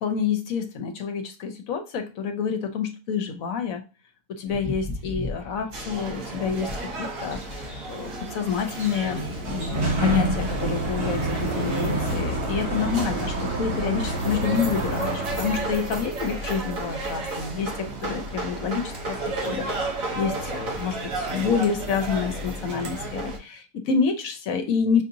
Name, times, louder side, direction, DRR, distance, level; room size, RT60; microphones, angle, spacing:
voice 1, 0.0-3.8 4.4-19.2 19.4-25.0, left 6 dB, 70° left, 6 dB, 1.1 m, -28 dB
sound 1, 4.5-10.8, left 2 dB, 5° right, 1.0 m, -39 dB
sound 2, 5.7-23.4, right 2 dB, 65° right, 1.4 m, -33 dB
Sliding door, 8.7-16.1, right 1 dB, 85° right, 2.0 m, -28 dB
5.9 x 2.8 x 2.6 m, 0.32 s
omnidirectional pair, 1.6 m